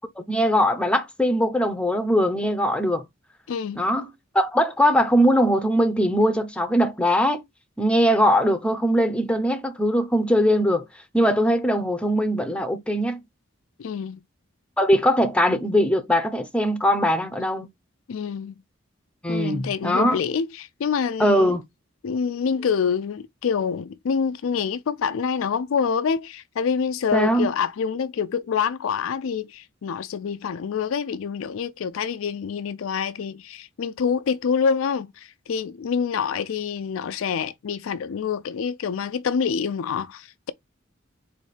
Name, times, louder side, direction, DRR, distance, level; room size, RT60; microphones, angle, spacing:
voice 1, 0.2-3.0 3.8-4.1 4.3-7.4 7.8-10.9 11.1-13.2 14.8-17.7 19.2-20.2 21.2-21.6 27.1-27.5, equal, 5° left, 0.6 m, -21 dB
voice 2, 3.5-3.8 13.8-14.2 18.1-18.5 19.3-21.6 22.0-40.5, left 6 dB, 80° left, 0.4 m, -26 dB
4.2 x 2.6 x 4.8 m
head